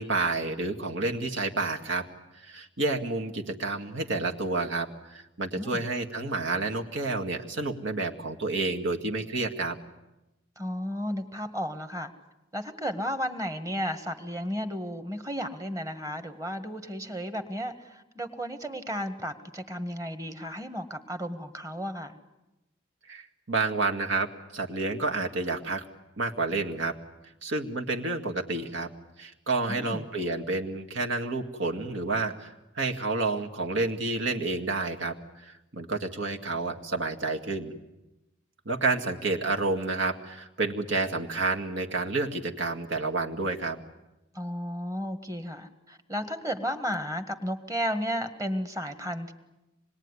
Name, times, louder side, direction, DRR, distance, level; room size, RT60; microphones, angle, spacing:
voice 1, 0.0-2.1 2.4-9.8 23.1-24.3 24.5-25.9 26.2-26.9 27.4-28.9 29.2-37.7 38.7-43.8, right 3 dB, 70° right, 3 dB, 2.2 m, -30 dB
voice 2, 10.6-12.1 12.5-22.2 29.7-30.0 44.3-49.3, equal, 15° right, 8 dB, 1.6 m, -33 dB
26.0 x 21.0 x 9.9 m, 0.99 s
head